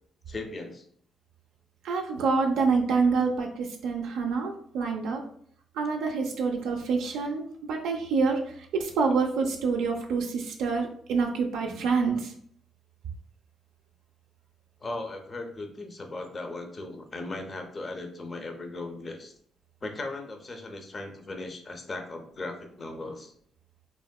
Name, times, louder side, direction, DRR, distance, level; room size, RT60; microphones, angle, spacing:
voice 1, 0.3-0.8 14.8-19.3 19.8-23.3, left 2 dB, 35° left, 5 dB, 0.5 m, -37 dB
voice 2, 1.8-5.2 5.7-12.3, right 4 dB, 85° right, 1 dB, 0.3 m, -27 dB
3.5 x 2.1 x 2.2 m, 0.62 s
cardioid pair, 90°, 0 cm